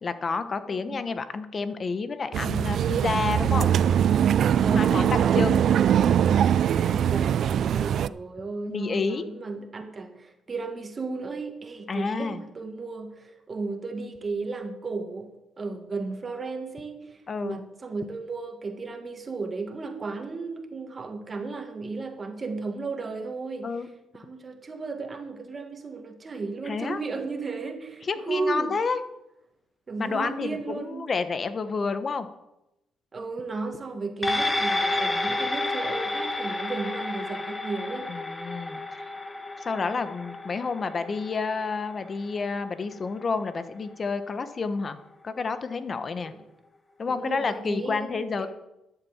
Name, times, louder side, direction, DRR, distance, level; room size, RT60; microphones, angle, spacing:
voice 1, 0.0-3.7 4.7-5.6 8.7-9.3 11.9-12.4 17.3-17.6 23.6-23.9 26.7-27.0 28.0-29.0 30.0-32.3 38.1-39.1 39.6-45.0 45.2-46.3 47.0-48.5, left 4 dB, 40° left, 11 dB, 1.1 m, -29 dB
voice 2, 0.7-1.0 4.6-23.8 24.1-28.8 29.9-31.1 33.1-38.1 46.2-46.4 47.1-48.5, right 3 dB, 35° right, 6 dB, 1.8 m, -34 dB
sound 1, 2.3-8.1, right 9 dB, 65° right, 0.4 m, -22 dB
sound 2, 34.2-42.9 43.3-43.4, left 2 dB, 15° left, 1.6 m, -30 dB
12.0 x 7.3 x 7.2 m, 0.90 s
cardioid pair, 90°, 0 cm